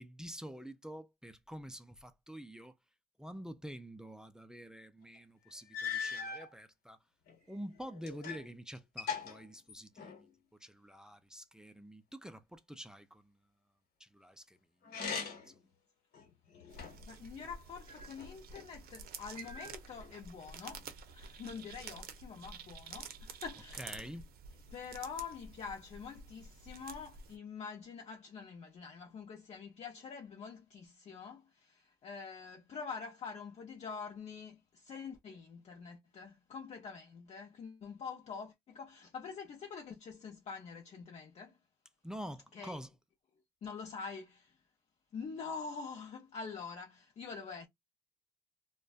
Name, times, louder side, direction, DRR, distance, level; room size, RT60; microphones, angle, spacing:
voice 1, 0.0-2.7 3.2-7.0 7.5-10.1 10.6-13.3 14.0-14.6 15.5-15.6 23.7-24.4 42.0-42.9, equal, 5° right, 0.3 m, -47 dB
sound 1, 5.2-5.3 5.7-6.5 7.3-8.5 8.8-10.3 14.8-15.6 16.1-17.1 17.9-18.7 19.4-20.1, left 6 dB, 65° left, 1.2 m, -41 dB
voice 2, 16.7-23.9 24.7-41.6 42.5-42.8 43.6-44.6 45.1-47.7, left 5 dB, 40° left, 0.6 m, -46 dB
sound 2, 16.7-27.4, right 5 dB, 65° right, 0.6 m, -50 dB
2.5 x 2.2 x 2.3 m
cardioid pair, 110°, 17 cm